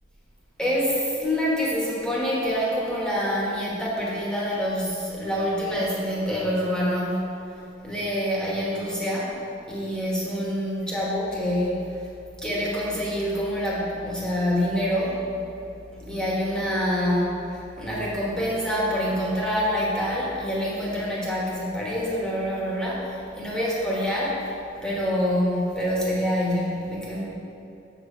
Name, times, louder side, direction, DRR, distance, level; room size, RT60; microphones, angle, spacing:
voice 1, 0.6-7.2 7.8-9.3 9.7-12.1 12.4-15.2 16.0-24.5 24.8-27.2, equal, 5° left, -6 dB, 1.3 m, -26 dB
7.3 x 5.0 x 4.4 m, 2.8 s
head